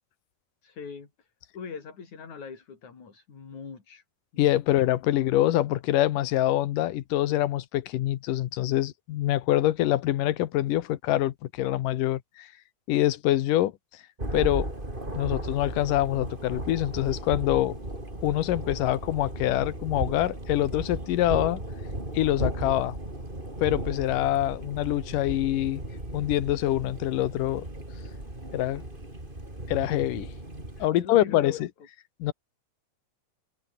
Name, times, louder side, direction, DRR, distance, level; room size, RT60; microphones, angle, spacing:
voice 1, 0.6-1.3 1.5-4.0 4.3-4.6 30.8-31.5, left 5 dB, 65° left, 5.5 m, -42 dB
voice 2, 4.4-12.5 12.9-13.7 14.3-14.7 15.2-17.8 18.2-21.6 22.1-23.0 23.6-25.8 26.1-27.6 28.5-28.8 29.7-30.3 30.8-31.7 32.2-32.3, left 14 dB, 90° left, 2.7 m, -25 dB
Thunder, 14.2-30.9, right 1 dB, 15° right, 5.9 m, -36 dB
omnidirectional pair, 3.7 m